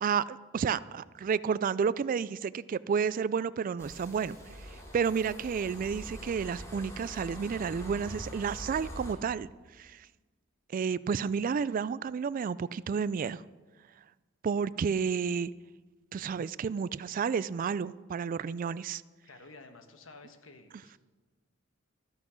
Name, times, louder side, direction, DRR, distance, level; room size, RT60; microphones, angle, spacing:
voice 1, 0.0-4.4 4.9-9.5 9.8-10.0 10.7-13.4 14.4-15.5 16.1-19.0, right 6 dB, 45° right, 19 dB, 0.3 m, -31 dB
sound 1, 3.8-9.1, equal, 15° left, 2.5 m, -44 dB
voice 2, 19.2-21.0, left 3 dB, 75° left, 7 dB, 1.3 m, -52 dB
13.5 x 9.8 x 6.3 m, 1.3 s
head